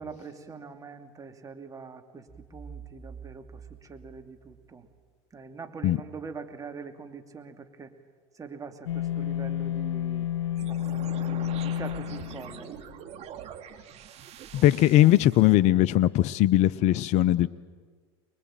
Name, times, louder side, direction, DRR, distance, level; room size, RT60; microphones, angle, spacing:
voice 1, 0.0-4.9 5.3-7.9 8.3-10.3 10.7-12.7, right 5 dB, 25° right, 6 dB, 2.6 m, -43 dB
sound 1, 2.3-5.1, right 6 dB, ahead, 2.4 m, -47 dB
sound 2, 8.9-13.1, left 11 dB, 85° left, 1.1 m, -30 dB
sound 3, 10.5-15.5, right 9 dB, 50° right, 2.4 m, -44 dB
voice 2, 14.5-17.5, left 14 dB, 55° left, 16 dB, 0.7 m, -20 dB
24.5 x 22.5 x 9.0 m, 1.5 s
hypercardioid pair, 90°, 14 cm